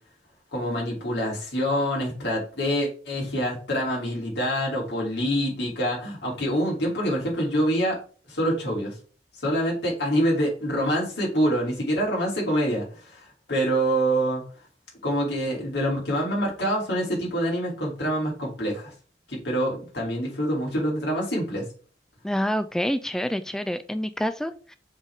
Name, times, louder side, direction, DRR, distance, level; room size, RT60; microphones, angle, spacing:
voice 1, 0.5-8.0 8.3-9.0 9.4-13.2 13.5-14.4 15.0-18.9 19.3-21.6, equal, 80° left, -3 dB, 3.1 m, -26 dB
voice 2, 22.2-24.8, equal, 5° left, 10 dB, 0.3 m, -27 dB
7.2 x 4.0 x 3.6 m, 0.39 s
head